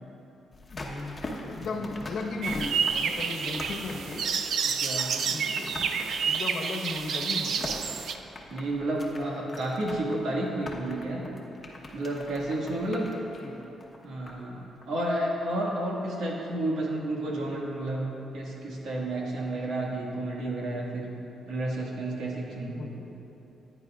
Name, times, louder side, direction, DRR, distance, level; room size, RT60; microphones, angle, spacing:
sound 1, 0.5-14.5 14.8-14.9, left 2 dB, 25° left, 1.0 m, -42 dB
voice 1, 0.7-4.2 5.1-5.9 6.2-7.8 13.4-13.7 22.7-22.9, left 3 dB, 65° left, 1 dB, 1.1 m, -36 dB
sound 2, 2.4-8.2, right 6 dB, 60° right, 0.4 m, -29 dB
voice 2, 4.6-5.1 8.5-11.5 11.9-13.1 14.0-21.1 21.4-23.0, right 1 dB, 90° right, -3 dB, 1.7 m, -31 dB
15.0 x 9.7 x 2.4 m, 3.0 s
cardioid pair, 140°, 0 cm